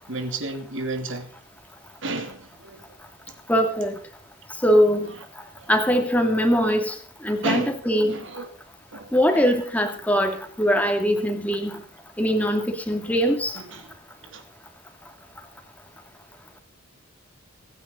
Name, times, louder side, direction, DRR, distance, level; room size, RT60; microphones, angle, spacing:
voice 1, 0.1-1.3 2.0-2.8 7.4-8.5 8.9-9.5 13.7-13.8 14.2-14.4, right 2 dB, 70° right, 3.0 m, -31 dB
voice 2, 3.5-4.0 4.6-5.1 5.7-6.9 7.2-8.2 9.1-11.8 12.2-13.6, equal, 10° left, 2.6 m, -21 dB
25.5 x 10.0 x 4.0 m
head